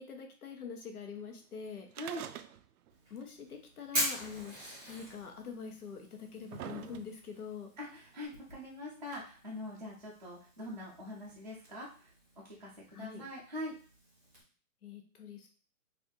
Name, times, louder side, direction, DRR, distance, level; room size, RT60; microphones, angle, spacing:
voice 1, 0.0-1.9 3.1-4.5 4.9-7.7 12.9-13.3 14.8-15.5, left 6 dB, 80° left, 3 dB, 1.1 m, -44 dB
voice 2, 1.9-2.2 7.8-12.1 12.4-13.7, left 1 dB, 30° right, -6 dB, 0.4 m, -43 dB
sound 1, 1.9-2.9 3.2-3.3 4.3-4.4 5.3-5.4 6.0-7.4 8.2-8.3, right 10 dB, 80° right, 0.5 m, -45 dB
Fire, 2.9-14.4, equal, 5° right, 0.9 m, -44 dB
3.4 x 2.6 x 3.7 m, 0.42 s
hypercardioid pair, 180°, 44 cm